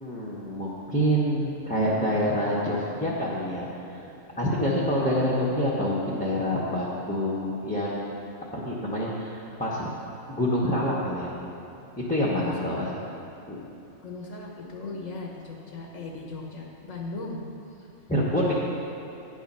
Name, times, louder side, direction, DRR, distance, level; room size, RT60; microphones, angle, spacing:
voice 1, 0.0-4.0 4.4-8.0 8.5-9.9 10.3-11.3 12.1-12.9 13.5-13.6 18.1-18.5, equal, 5° left, -7 dB, 0.9 m, -27 dB
voice 2, 12.4-12.8 14.0-17.4 17.8-17.9, left 3 dB, 75° left, 0 dB, 1.3 m, -38 dB
10.0 x 7.3 x 5.4 m, 2.8 s
omnidirectional pair, 1.4 m